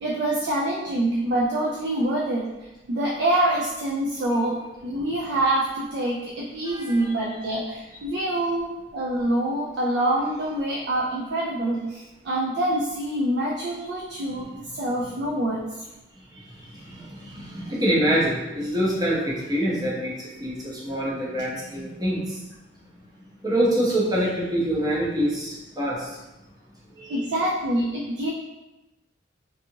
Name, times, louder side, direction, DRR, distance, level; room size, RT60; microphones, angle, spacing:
voice 1, 0.0-15.8 27.1-28.3, right 1 dB, 60° right, -3 dB, 0.4 m, -26 dB
voice 2, 6.7-7.1 16.3-22.4 23.4-26.2 27.0-27.2, right 1 dB, 20° right, -6 dB, 0.6 m, -26 dB
2.7 x 2.3 x 2.7 m, 1.0 s
head